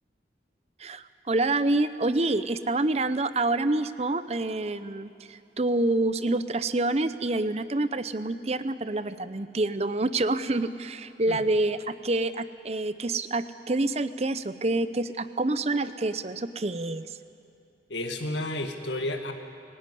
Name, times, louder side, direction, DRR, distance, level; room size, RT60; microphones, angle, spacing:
voice 1, 0.8-17.2, right 2 dB, 35° right, 13 dB, 0.7 m, -27 dB
voice 2, 17.9-19.3, left 1 dB, 85° left, 4 dB, 2.0 m, -31 dB
24.0 x 16.5 x 10.0 m, 2.6 s
head